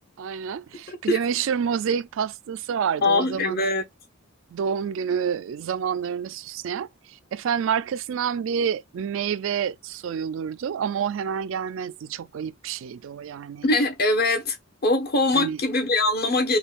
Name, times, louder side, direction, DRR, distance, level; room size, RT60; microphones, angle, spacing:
voice 1, 0.2-3.7 4.5-13.6 15.3-15.6, right 7 dB, 65° right, 0.3 m, -28 dB
voice 2, 0.9-1.2 3.0-3.8 13.6-14.6 14.8-16.6, left 2 dB, 50° left, 1.0 m, -22 dB
5.4 x 2.3 x 2.4 m
head